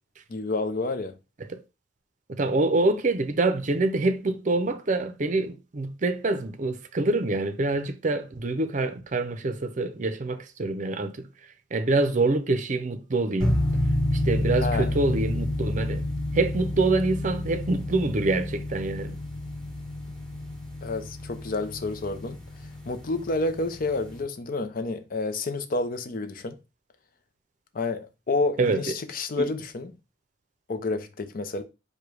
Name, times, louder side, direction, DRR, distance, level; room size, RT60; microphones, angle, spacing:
voice 1, 0.3-1.2 14.6-14.9 20.8-22.4 22.9-26.6 27.7-29.9 30.7-31.6, left 3 dB, 50° left, 0.6 m, -29 dB
voice 2, 2.3-11.3 11.7-13.6 14.1-16.0 16.3-19.2 28.6-28.8 29.4-29.5, right 2 dB, 45° right, 0.6 m, -26 dB
sound 1, 13.4-24.2, left 1 dB, 5° left, 1.3 m, -30 dB
4.9 x 2.2 x 4.8 m
head